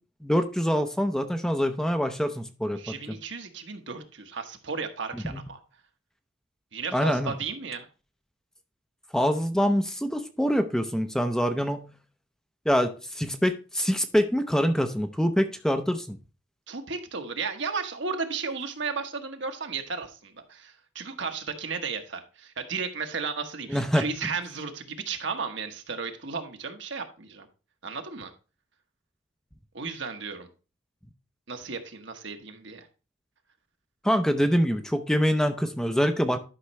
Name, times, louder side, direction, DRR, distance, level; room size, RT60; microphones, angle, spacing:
voice 1, 0.2-2.8 3.1-3.2 5.1-5.4 6.9-7.3 9.1-11.9 12.7-16.2 23.7-24.3 34.0-36.4, equal, 5° left, 7 dB, 0.6 m, -25 dB
voice 2, 2.7-5.6 6.7-7.8 16.7-27.5 27.8-28.3 29.7-30.5 31.5-32.9, right 5 dB, 65° right, 5 dB, 1.2 m, -34 dB
11.5 x 5.8 x 3.2 m, 0.33 s
head